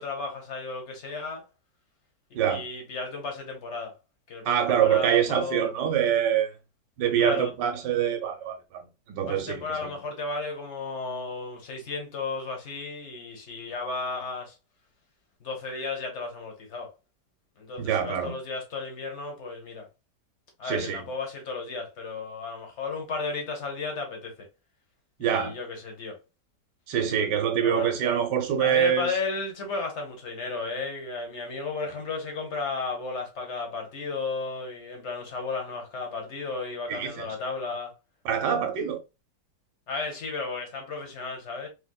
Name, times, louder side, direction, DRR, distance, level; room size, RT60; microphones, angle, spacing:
voice 1, 0.0-1.5 2.5-4.0 4.3-5.7 7.2-7.5 9.3-14.6 15.4-16.9 17.6-19.9 20.6-24.5 25.2-26.2 27.6-27.9 28.6-37.9 39.9-41.7, left 4 dB, 45° left, 1.3 m, -34 dB
voice 2, 2.3-2.7 4.4-6.5 7.0-9.9 17.8-18.3 20.6-21.1 25.2-25.5 26.9-29.1 36.9-37.3 38.2-39.0, right 9 dB, 90° right, 1.4 m, -25 dB
3.2 x 2.9 x 2.2 m
omnidirectional pair, 1.8 m